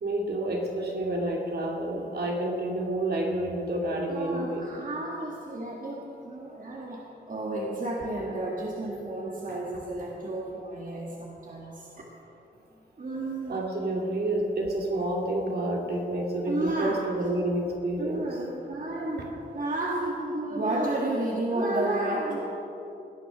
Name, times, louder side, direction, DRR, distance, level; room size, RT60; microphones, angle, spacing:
voice 1, 0.0-4.7 9.5-9.6 13.5-18.4, right 1 dB, 65° right, -1 dB, 2.4 m, -29 dB
voice 2, 4.1-12.0 13.0-13.6 16.5-17.0 18.0-22.5, right 2 dB, 50° right, -2 dB, 1.8 m, -32 dB
18.0 x 10.0 x 6.1 m, 2.9 s
wide cardioid pair, 90°, 18 cm